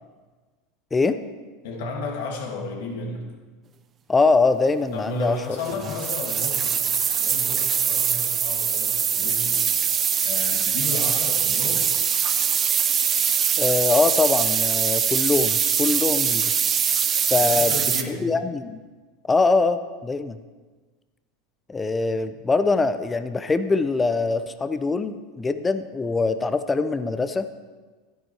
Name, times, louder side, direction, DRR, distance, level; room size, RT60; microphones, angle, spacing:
voice 1, 1.6-3.2 4.9-9.7 10.2-11.9 17.4-18.3, left 3 dB, 65° left, 1 dB, 2.4 m, -33 dB
voice 2, 4.1-5.4 13.5-16.4 17.3-17.7 18.1-18.8 19.3-20.4 21.7-27.5, left 3 dB, 20° left, 11 dB, 0.7 m, -23 dB
sound 1, 5.6-18.0, right 8 dB, 35° right, 0.7 m, -23 dB
12.5 x 10.5 x 4.6 m, 1.3 s
hypercardioid pair, 85°, 0 cm